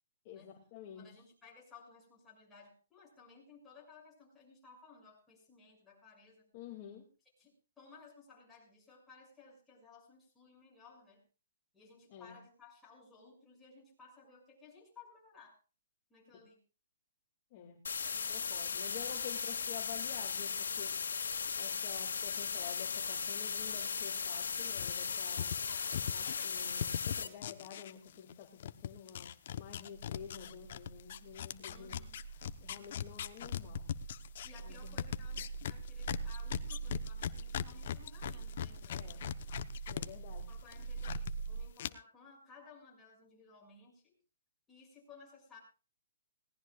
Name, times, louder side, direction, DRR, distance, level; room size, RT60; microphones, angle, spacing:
voice 1, 0.2-1.1 6.5-7.1 12.1-12.4 17.5-17.8 18.3-21.0 21.5-25.6 26.1-32.0 32.3-33.9 34.6-35.0 39.0-39.2 39.9-40.5, left 9 dB, 35° left, 1 dB, 2.4 m, -50 dB
voice 2, 0.9-6.5 7.4-11.2 11.7-15.6 16.1-16.6 25.5-26.3 31.7-32.2 34.4-39.7 40.3-44.2 44.7-45.6, left 4 dB, 10° left, -3 dB, 6.5 m, -59 dB
sound 1, 17.8-27.3, left 6 dB, 85° left, 2.1 m, -37 dB
sound 2, 24.8-28.3 28.6-40.1 40.4-41.3 41.8-41.9, left 10 dB, 50° left, 0.9 m, -40 dB
sound 3, 29.9-41.6, right 5 dB, 55° right, 7.9 m, -44 dB
20.5 x 18.0 x 2.4 m, 0.35 s
hypercardioid pair, 155°, 0 cm